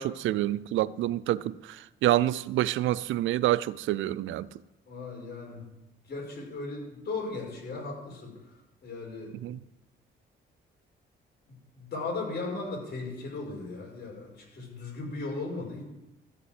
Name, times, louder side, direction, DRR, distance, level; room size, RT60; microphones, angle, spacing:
voice 1, 0.0-4.5 9.4-9.6, right 14 dB, 80° right, 0.4 m, -27 dB
voice 2, 4.9-5.6 6.1-8.3 8.8-9.5 11.5-15.8, left 3 dB, 55° left, 5.2 m, -37 dB
14.5 x 5.7 x 7.7 m
cardioid pair, 90°, 20 cm